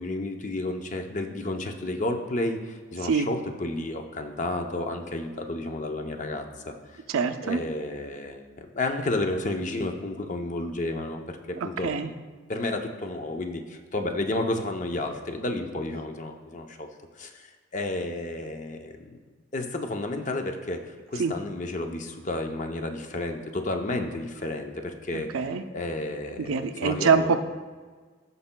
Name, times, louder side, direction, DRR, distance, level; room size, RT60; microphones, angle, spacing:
voice 1, 0.0-7.0 7.4-16.9 17.2-19.2 19.5-25.3 25.7-27.4, left 2 dB, 35° left, 5 dB, 0.6 m, -32 dB
voice 2, 7.1-7.6 11.8-12.1 21.2-21.3 25.1-25.6 26.5-27.4, right 5 dB, 90° right, 9 dB, 0.5 m, -24 dB
16.0 x 5.4 x 2.2 m, 1.5 s
head